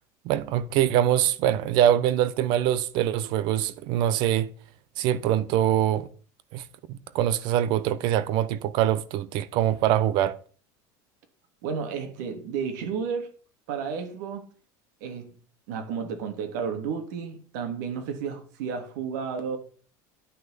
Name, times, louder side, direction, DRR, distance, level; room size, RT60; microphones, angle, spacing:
voice 1, 0.2-4.5 5.0-6.1 6.5-6.6 6.9-10.4, right 11 dB, 55° right, 0.8 m, -24 dB
voice 2, 11.6-13.3 13.7-14.5 15.0-15.3 15.7-19.6, right 6 dB, 85° right, 3.1 m, -32 dB
11.5 x 6.5 x 6.9 m
cardioid pair, 155°, 9 cm